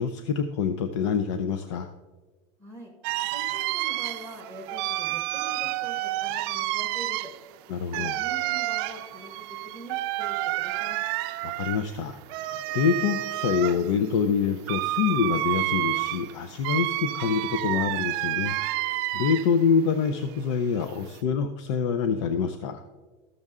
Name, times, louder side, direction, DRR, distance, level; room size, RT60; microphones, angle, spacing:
voice 1, 0.0-1.9 7.7-8.2 11.4-22.8, left 6 dB, 85° left, 9 dB, 0.6 m, -26 dB
voice 2, 2.6-2.9 3.3-7.3 7.9-11.0, equal, 15° left, -1 dB, 1.5 m, -43 dB
sound 1, 3.0-19.7 20.0-21.2, right 17 dB, 60° right, 0.5 m, -30 dB
13.5 x 6.5 x 3.6 m, 1.3 s
supercardioid pair, 155°, 15 cm